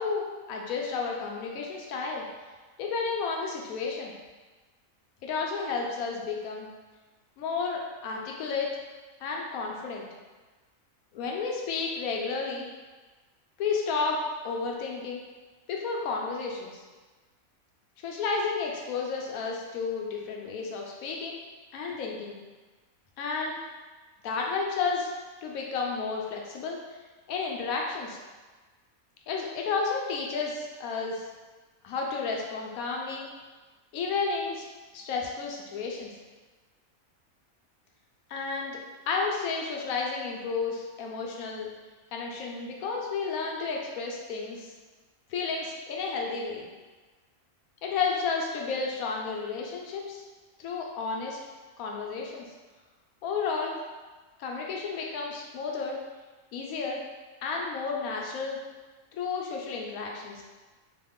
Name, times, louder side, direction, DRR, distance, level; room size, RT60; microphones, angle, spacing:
voice 1, 0.0-2.2 2.8-4.1 5.2-6.7 7.4-8.7 9.2-10.1 11.1-12.7 13.6-14.2 14.4-15.2 15.7-16.8 18.0-21.4 21.7-22.4 23.2-23.6 24.2-25.1 25.4-26.9 27.3-28.2 29.3-31.3 31.8-33.2 33.9-34.7 34.9-36.1 38.3-38.8 39.1-41.7 42.1-44.7 45.3-46.7 47.8-50.2 50.6-51.4 51.8-52.5 53.2-53.8 54.4-56.0 56.5-57.0 57.4-58.6 59.1-60.4, left 4 dB, 80° left, 0 dB, 1.0 m, -32 dB
3.0 x 2.4 x 3.5 m, 1.3 s
omnidirectional pair, 1.5 m